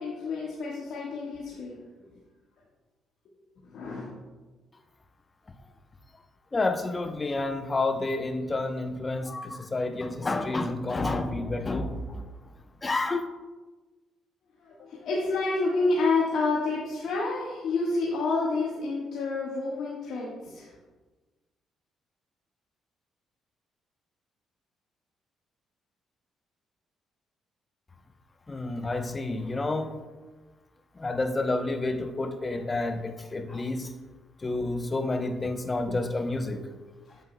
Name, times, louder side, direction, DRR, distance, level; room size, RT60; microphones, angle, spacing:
voice 1, 0.0-1.8 3.7-4.2 14.6-20.7, left 3 dB, 70° left, -4 dB, 1.4 m, -29 dB
voice 2, 6.5-12.3 12.8-13.3 28.5-30.0 31.0-33.9 34.4-36.7, left 2 dB, 30° left, 7 dB, 0.8 m, -29 dB
9.0 x 7.8 x 2.2 m, 1.2 s
supercardioid pair, 70°, 0 cm